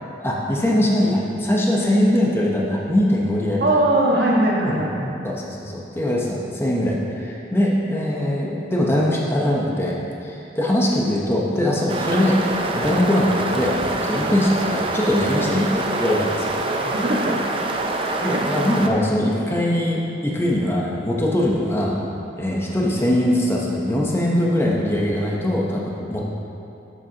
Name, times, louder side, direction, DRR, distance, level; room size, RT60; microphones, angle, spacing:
voice 1, 0.2-3.6 4.6-4.7 5.2-12.4 12.7-13.8 14.0-16.5 18.0-22.0 22.4-26.2, left 1 dB, 15° left, -3 dB, 0.8 m, -21 dB
voice 2, 3.6-5.1 16.8-17.4 18.2-18.4, right 1 dB, 65° right, -4 dB, 1.5 m, -20 dB
sound 1, 11.9-18.9, right 2 dB, 30° right, 0.5 m, -25 dB
10.0 x 7.7 x 2.9 m, 2.7 s
head